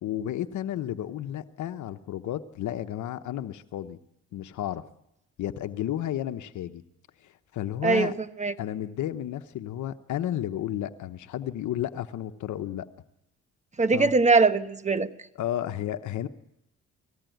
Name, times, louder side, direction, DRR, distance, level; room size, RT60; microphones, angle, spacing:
voice 1, 0.0-4.0 4.3-4.8 5.4-6.8 7.2-8.1 8.6-12.9 13.9-14.1 15.4-16.3, left 11 dB, 75° left, 10 dB, 1.0 m, -32 dB
voice 2, 7.8-8.5 13.8-15.1, right 4 dB, 25° right, 10 dB, 1.2 m, -22 dB
20.0 x 15.5 x 9.2 m, 0.84 s
cardioid pair, 90°, 30 cm